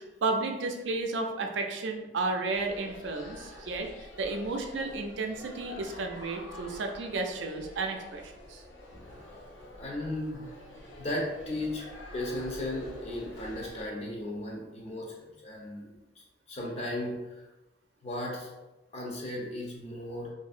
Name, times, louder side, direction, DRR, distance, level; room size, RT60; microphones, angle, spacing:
voice 1, 0.0-8.6, right 3 dB, 80° right, 3 dB, 0.4 m, -33 dB
sound 1, 2.5-13.8, left 1 dB, 85° left, 0.6 m, -47 dB
voice 2, 9.8-10.5 11.0-11.9 12.1-15.9 16.2-17.5 18.0-18.5 18.9-20.3, left 1 dB, 35° left, -2 dB, 0.6 m, -36 dB
2.8 x 2.6 x 2.4 m, 1.0 s
head